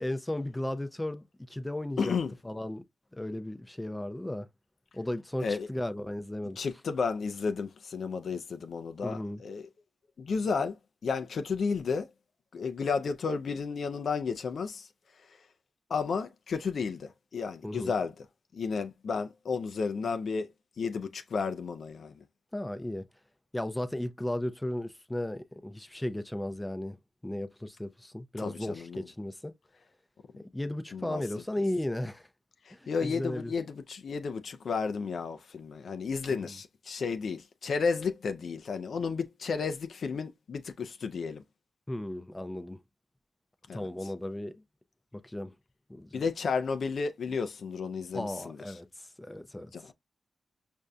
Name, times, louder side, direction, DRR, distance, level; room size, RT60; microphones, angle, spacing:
voice 1, 0.0-2.2 2.4-2.8 3.1-4.5 4.9-6.6 9.0-9.4 17.6-17.9 22.5-23.0 23.5-27.0 27.2-29.5 30.4-32.3 32.7-33.5 36.3-36.5 41.9-42.8 43.7-44.5 45.1-45.5 45.9-46.2 48.1-49.7, left 1 dB, 15° left, 0.5 m, -35 dB
voice 2, 2.0-2.3 5.4-5.7 6.6-9.7 10.2-10.8 11.0-12.1 12.5-14.9 15.9-18.1 18.5-20.5 20.8-22.2 28.4-29.0 30.9-31.2 32.7-41.4 43.7-43.9 46.1-48.6 49.7-49.9, left 5 dB, 70° left, 0.4 m, -32 dB
5.2 x 2.5 x 2.2 m
cardioid pair, 55°, 0 cm